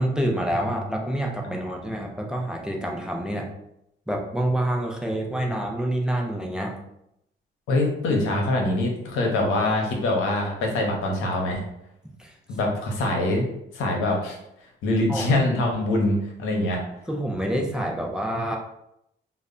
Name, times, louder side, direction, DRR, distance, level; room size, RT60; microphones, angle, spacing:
voice 1, 0.0-3.5 4.1-6.8 12.2-12.3 15.1-15.3 17.1-18.6, right 1 dB, 5° right, 1 dB, 0.4 m, -27 dB
voice 2, 7.7-11.6 12.5-13.5 13.7-14.4 14.8-16.8, left 2 dB, 85° left, 0 dB, 0.7 m, -24 dB
2.1 x 2.1 x 3.6 m, 0.79 s
cardioid pair, 90°, 20 cm